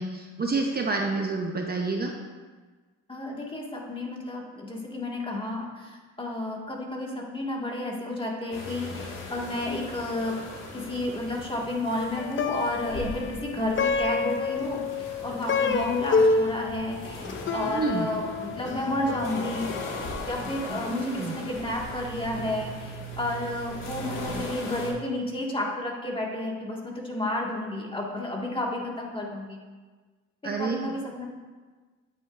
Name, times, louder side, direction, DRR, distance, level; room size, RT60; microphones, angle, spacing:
voice 1, 0.0-2.1 17.7-18.1 20.7-21.3 30.4-30.9, right 3 dB, 30° right, 2 dB, 0.9 m, -29 dB
voice 2, 3.1-10.4 10.7-19.7 20.3-29.6 30.4-31.3, left 1 dB, 15° left, -2 dB, 1.9 m, -31 dB
sound 1, 8.5-24.9, left 1 dB, 85° left, 2.0 m, -39 dB
Plucked string instrument, 12.2-21.6, left 4 dB, 40° left, 0.6 m, -29 dB
10.0 x 8.6 x 2.6 m, 1.4 s
cardioid pair, 90°, 30 cm